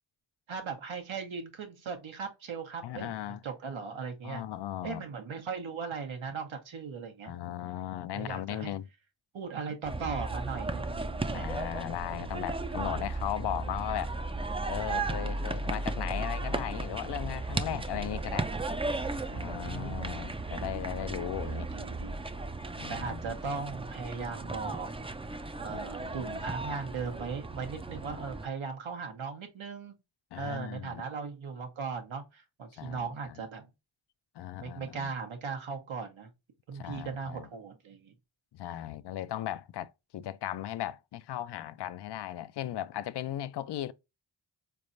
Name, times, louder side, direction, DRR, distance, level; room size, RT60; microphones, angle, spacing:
voice 1, 0.5-3.1 3.4-4.4 4.8-7.3 8.1-8.7 9.3-11.5 19.3-20.1 21.4-22.3 22.9-24.9 25.6-29.9 30.4-33.7 34.6-36.3 36.7-38.1, right 5 dB, 85° right, 1.1 m, -38 dB
voice 2, 2.8-3.4 4.2-5.1 7.2-8.9 11.3-14.2 14.7-18.5 19.3-21.7 22.8-23.4 25.7-26.3 30.3-31.0 32.8-33.4 34.3-35.1 36.7-37.5 38.5-43.9, left 12 dB, 60° left, 0.5 m, -37 dB
sound 1, 9.8-28.5, right 2 dB, 15° right, 0.4 m, -35 dB
4.2 x 3.3 x 2.5 m
cardioid pair, 50°, 46 cm